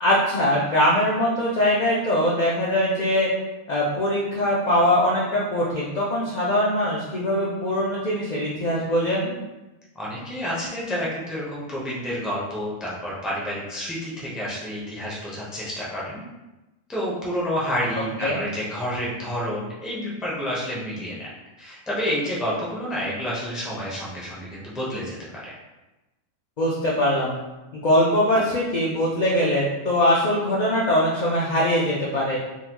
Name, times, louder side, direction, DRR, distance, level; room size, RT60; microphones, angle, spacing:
voice 1, 0.0-3.3 3.7-9.3 18.2-18.4 26.6-27.3 27.7-32.4, left 1 dB, 80° left, -5 dB, 0.4 m, -22 dB
voice 2, 9.9-16.2 16.9-21.3 21.6-25.5, equal, ahead, -6 dB, 0.3 m, -29 dB
3.9 x 2.2 x 2.9 m, 1.1 s
omnidirectional pair, 1.4 m